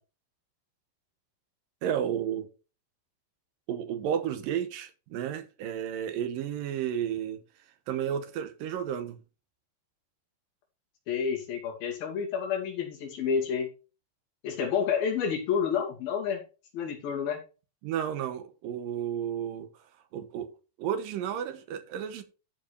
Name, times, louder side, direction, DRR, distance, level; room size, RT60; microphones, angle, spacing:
voice 1, 1.8-2.5 3.7-7.4 7.9-9.2 17.8-19.7 20.1-20.5 20.8-22.2, right 9 dB, 80° right, 2.7 m, -32 dB
voice 2, 11.1-13.7 14.4-16.4 16.7-17.4, left 7 dB, 90° left, 4.1 m, -29 dB
12.5 x 5.1 x 4.4 m
omnidirectional pair, 4.0 m